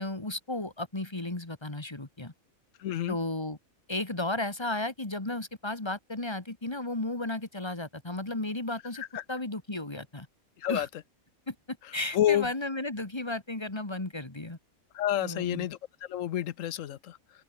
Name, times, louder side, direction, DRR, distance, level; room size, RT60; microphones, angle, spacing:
voice 1, 0.0-2.3 3.1-3.6 3.9-10.3 10.7-10.9 11.5-14.6 15.2-15.7, left 2 dB, 20° left, 2.1 m, -34 dB
voice 2, 2.8-3.2 9.0-9.2 10.6-10.9 12.1-12.5 14.9-15.8 16.1-17.2, left 11 dB, 70° left, 1.1 m, -29 dB
open air
omnidirectional pair, 1.4 m